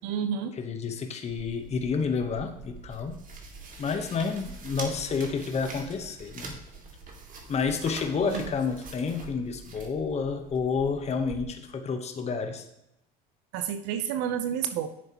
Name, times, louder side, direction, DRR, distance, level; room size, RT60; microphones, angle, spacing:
voice 1, 0.0-0.5 8.2-8.5 13.5-14.9, right 8 dB, 70° right, 8 dB, 0.8 m, -30 dB
voice 2, 0.6-3.2 3.8-6.6 7.5-12.6, left 5 dB, 30° left, 6 dB, 1.0 m, -30 dB
sound 1, 1.3-11.4, right 4 dB, 40° right, 2.1 m, -44 dB
9.5 x 7.0 x 3.0 m, 0.86 s
supercardioid pair, 85°, 20 cm